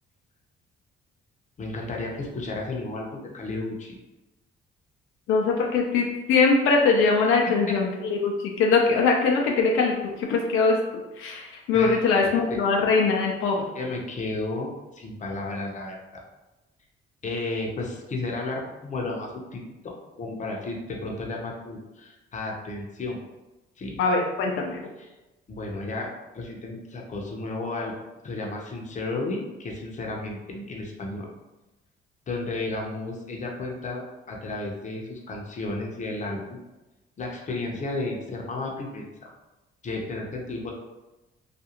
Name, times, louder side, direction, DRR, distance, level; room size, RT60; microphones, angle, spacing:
voice 1, 1.6-4.0 7.7-7.8 11.7-12.3 13.7-16.2 17.2-23.2 23.8-24.0 25.0-25.1 25.5-27.9 28.2-31.3 32.3-36.6 37.2-39.3 39.8-40.7, left 2 dB, 40° left, -1 dB, 0.6 m, -33 dB
voice 2, 5.3-10.8 11.2-13.6 24.0-24.8, left 4 dB, 85° left, 0 dB, 0.4 m, -22 dB
2.4 x 2.3 x 2.8 m, 1.1 s
cardioid pair, 90°, 20 cm